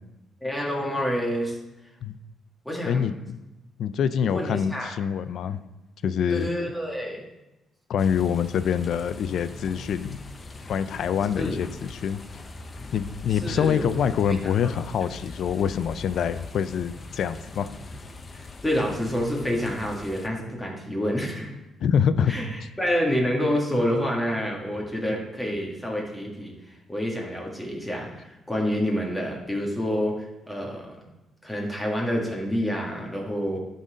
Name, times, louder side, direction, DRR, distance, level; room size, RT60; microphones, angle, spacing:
voice 1, 0.4-1.6 2.7-3.1 4.2-4.9 6.3-7.2 11.4-11.6 13.3-13.9 14.3-14.5 18.3-21.5 22.3-31.0 31.4-33.6, equal, 10° left, -2 dB, 1.8 m, -28 dB
voice 2, 2.8-3.4 3.8-5.6 6.0-6.5 7.9-10.2 10.7-12.2 12.9-17.7 21.8-22.3, left 7 dB, 70° left, 13 dB, 0.4 m, -25 dB
sound 1, 8.0-20.3, left 3 dB, 35° left, 0.7 m, -41 dB
11.0 x 4.1 x 5.0 m, 0.98 s
cardioid pair, 90°, 0 cm